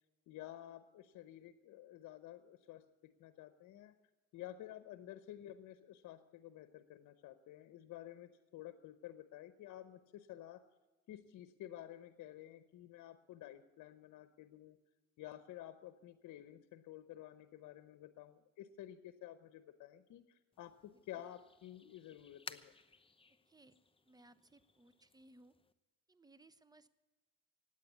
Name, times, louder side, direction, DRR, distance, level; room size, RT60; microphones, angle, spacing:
voice 1, 0.3-3.9 4.3-10.6 11.1-14.8 15.2-22.7, left 13 dB, 85° left, 11 dB, 0.9 m, -52 dB
sound 1, 20.5-25.7, left 4 dB, 20° left, 0.9 m, -57 dB
voice 2, 23.4-23.8 24.0-25.6 26.1-26.9, right 2 dB, 15° right, 15 dB, 0.9 m, -63 dB
16.0 x 9.7 x 8.1 m, 1.1 s
cardioid pair, 90°, 30 cm